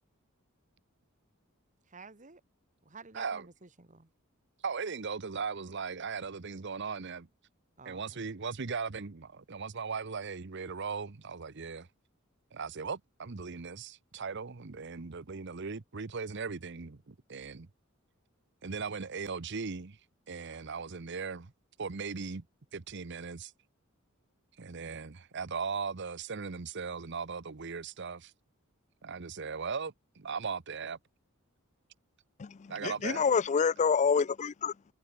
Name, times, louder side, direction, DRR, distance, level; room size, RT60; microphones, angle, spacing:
voice 1, 1.9-2.4 2.8-4.1 7.8-8.3 32.7-33.2, right 4 dB, 40° right, 1.9 m, -52 dB
voice 2, 4.6-7.3 7.9-11.9 12.5-17.7 18.6-20.0 20.3-21.5 21.8-22.4 22.7-23.5 24.6-28.3 29.0-31.0 32.7-33.3, right 5 dB, 55° right, 0.9 m, -38 dB
voice 3, 32.4-34.9, left 6 dB, 35° left, 0.4 m, -28 dB
head